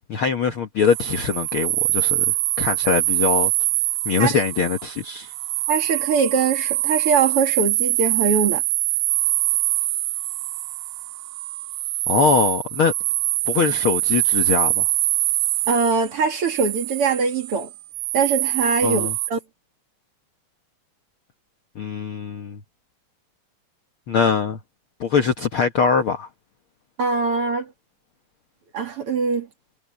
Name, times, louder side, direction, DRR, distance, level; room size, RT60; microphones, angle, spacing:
voice 1, 0.0-2.2 2.6-3.5 4.0-5.3 12.1-12.9 13.5-14.9 18.8-19.1 21.7-22.6 24.1-24.6 25.0-26.3, left 6 dB, 90° left, 1.1 m, -22 dB
sound 1, 0.8-19.3, right 17 dB, 80° right, 2.2 m, -24 dB
voice 2, 5.7-8.6 15.7-17.7 18.1-19.4 27.0-27.7 28.7-29.5, right 5 dB, 45° right, 2.3 m, -22 dB
omnidirectional pair, 4.3 m